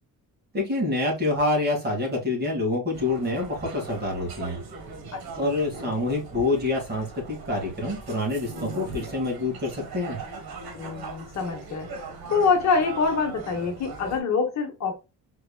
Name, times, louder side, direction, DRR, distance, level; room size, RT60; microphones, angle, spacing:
voice 1, 0.5-4.6 5.4-10.2, left 2 dB, 25° right, 1.9 m, -26 dB
sound 1, 2.9-14.2, right 3 dB, 85° right, 1.4 m, -40 dB
voice 2, 5.1-5.6 10.7-15.0, left 4 dB, 50° left, 1.1 m, -26 dB
4.6 x 3.8 x 2.2 m
cardioid pair, 175°, 36 cm